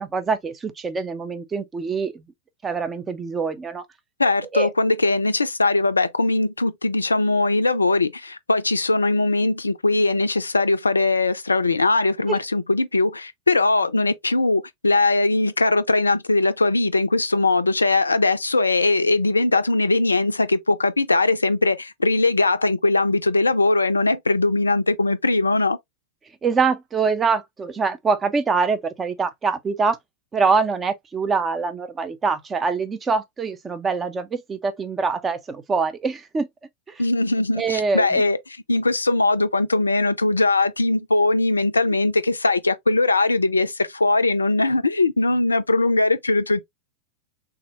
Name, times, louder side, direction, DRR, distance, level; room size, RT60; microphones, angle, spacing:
voice 1, 0.0-2.2 2.6-3.8 4.5-4.7 12.3-12.4 26.4-30.0 30.3-36.5 37.6-38.2, right 4 dB, 20° right, 0.5 m, -24 dB
voice 2, 4.2-25.8 37.0-38.4 38.7-46.6, left 2 dB, 80° left, 0.3 m, -20 dB
3.4 x 2.0 x 2.8 m
figure-of-eight pair, 90°, 0 cm